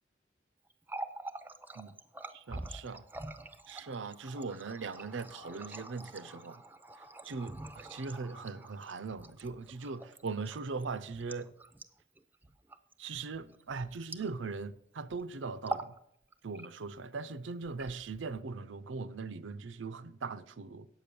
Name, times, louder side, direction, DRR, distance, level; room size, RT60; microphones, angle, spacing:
Water tap faucet, 0.7-14.7 15.0-15.2 15.6-16.0 16.3-17.0 17.6-18.4, right 2 dB, 10° right, 0.5 m, -45 dB
voice 1, 2.3-3.0 3.7-6.6 7.2-11.5 13.0-15.9 16.4-20.9, right 4 dB, 85° right, 0.6 m, -40 dB
9.2 x 7.6 x 6.8 m
head